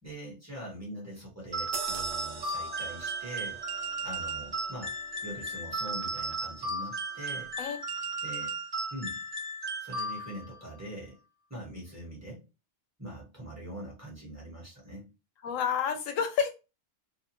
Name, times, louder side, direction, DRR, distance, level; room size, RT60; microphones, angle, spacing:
voice 1, 0.0-3.6 4.0-5.0 5.2-7.5 8.2-8.5 8.9-9.2 9.8-11.2 11.5-12.5 13.0-15.1, right 1 dB, 15° right, -4 dB, 1.1 m, -43 dB
sound 1, 1.5-10.6, right 2 dB, 35° right, 0.4 m, -35 dB
sound 2, 1.7-6.7 7.1-7.3, right 5 dB, 85° right, 1.0 m, -45 dB
voice 2, 15.4-16.5, left 7 dB, 85° left, 7 dB, 1.0 m, -29 dB
2.8 x 2.3 x 2.8 m, 0.28 s
omnidirectional pair, 1.3 m